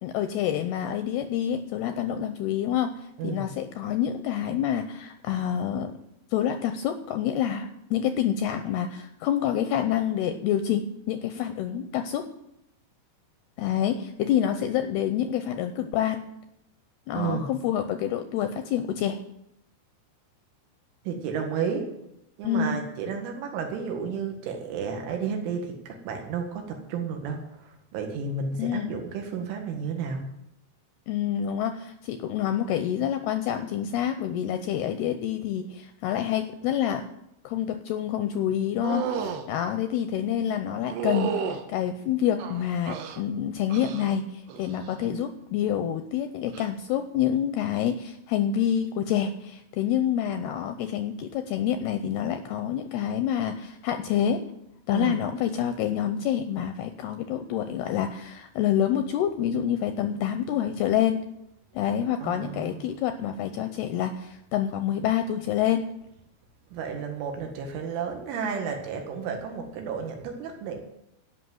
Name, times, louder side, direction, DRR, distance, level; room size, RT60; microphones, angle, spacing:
voice 1, 0.0-6.0 6.3-12.3 13.6-16.2 17.1-19.2 22.4-22.8 28.6-28.9 31.1-37.1 37.4-54.4 54.9-61.2 61.7-65.8, left 10 dB, 80° left, 8 dB, 2.3 m, -27 dB
voice 2, 17.2-17.5 21.1-21.9 22.4-30.3 54.9-55.2 62.2-62.9 66.7-70.8, right 6 dB, 90° right, 3 dB, 4.3 m, -32 dB
sound 1, 38.8-39.4 40.9-41.6 42.4-43.2 43.7-44.1 44.5-44.9 46.5-46.7, right 7 dB, 75° right, 2.9 m, -32 dB
16.5 x 6.0 x 7.9 m, 0.81 s
omnidirectional pair, 5.4 m